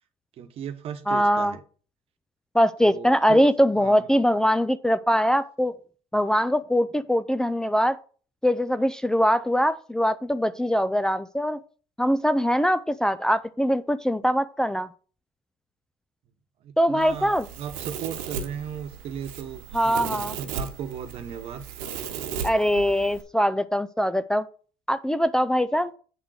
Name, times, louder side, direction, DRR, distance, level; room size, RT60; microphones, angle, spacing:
voice 1, 0.4-1.6 2.8-3.4 3.8-4.1 16.6-21.6, right 8 dB, 55° right, 9 dB, 1.1 m, -36 dB
voice 2, 1.1-1.5 2.5-5.7 6.1-8.0 8.4-11.6 12.0-14.9 16.8-17.5 19.7-20.3 22.4-24.5 24.9-25.9, equal, 5° left, 11 dB, 0.4 m, -22 dB
Domestic sounds home sounds, 17.0-23.2, right 7 dB, 85° right, 1.1 m, -36 dB
8.0 x 3.8 x 6.5 m, 0.40 s
supercardioid pair, 90°, 12 cm